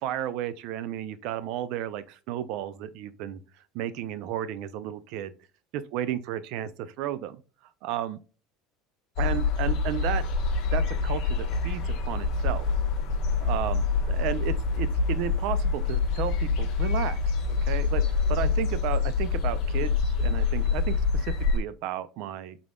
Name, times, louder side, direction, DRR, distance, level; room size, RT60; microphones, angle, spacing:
voice 1, 0.0-3.4 3.7-5.3 5.7-7.4 7.8-8.2 9.2-10.2 10.7-12.7 13.4-17.2 17.5-22.6, right 11 dB, 65° right, 0.4 m, -33 dB
sound 1, 9.2-21.6, left 4 dB, 60° left, 0.9 m, -26 dB
3.6 x 3.4 x 2.2 m
cardioid pair, 135°, 0 cm